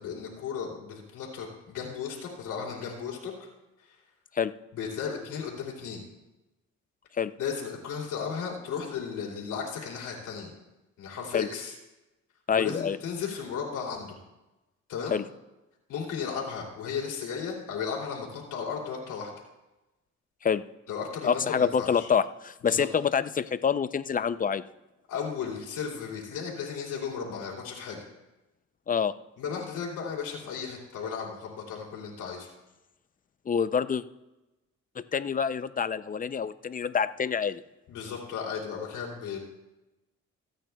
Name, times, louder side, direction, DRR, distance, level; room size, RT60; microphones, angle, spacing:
voice 1, 0.0-3.5 3.8-4.0 4.7-6.0 7.4-10.5 11.0-11.7 12.5-14.1 14.9-15.2 15.9-19.3 20.9-22.1 22.6-22.9 25.1-28.1 29.4-32.5 37.9-39.4, left 6 dB, 90° left, -2 dB, 2.9 m, -35 dB
voice 2, 12.5-13.0 15.1-15.2 20.4-20.6 21.2-24.6 28.9-29.1 33.5-34.0 35.1-37.6, left 7 dB, 30° left, 14 dB, 0.5 m, -26 dB
27.0 x 9.1 x 2.3 m, 1.0 s
cardioid pair, 90°, 30 cm